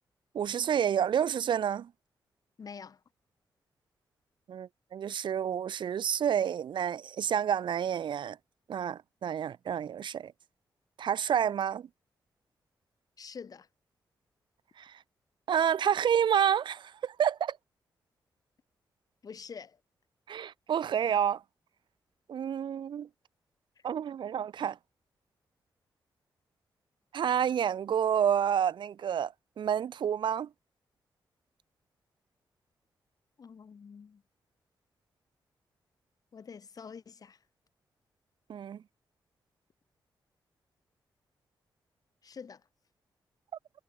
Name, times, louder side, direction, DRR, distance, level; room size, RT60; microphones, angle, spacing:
voice 1, 0.3-1.9 4.5-8.4 8.7-10.3 11.0-11.9 14.8-15.0 15.5-17.6 20.3-21.4 22.3-23.1 23.8-24.8 27.1-30.5 38.5-38.8, right 8 dB, 75° right, 2.7 m, -29 dB
voice 2, 2.6-3.0 13.2-13.7 19.2-19.8 33.4-34.2 36.3-37.4 42.2-42.6, left 6 dB, 50° left, 3.7 m, -46 dB
wide cardioid pair, 120°, 8 cm